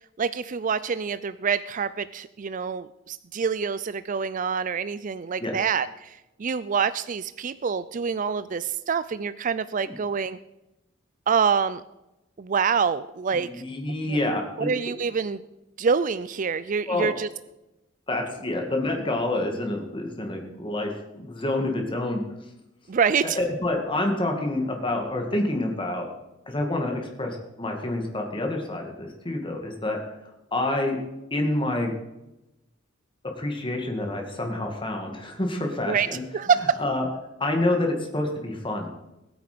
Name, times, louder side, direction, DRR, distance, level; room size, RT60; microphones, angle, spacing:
voice 1, 0.2-10.4 11.3-11.8 12.4-13.6 14.0-14.2 14.6-15.4 15.8-17.3 22.9-23.4 35.9-36.1 36.3-36.8, right 6 dB, 40° right, 15 dB, 0.4 m, -26 dB
voice 2, 13.3-14.7 16.9-17.1 18.1-22.2 23.2-26.1 26.5-30.0 30.5-31.0 31.3-31.9 33.4-36.2 36.8-37.0 37.4-38.9, left 1 dB, 25° left, 2 dB, 2.2 m, -28 dB
20.0 x 9.0 x 5.2 m, 0.94 s
head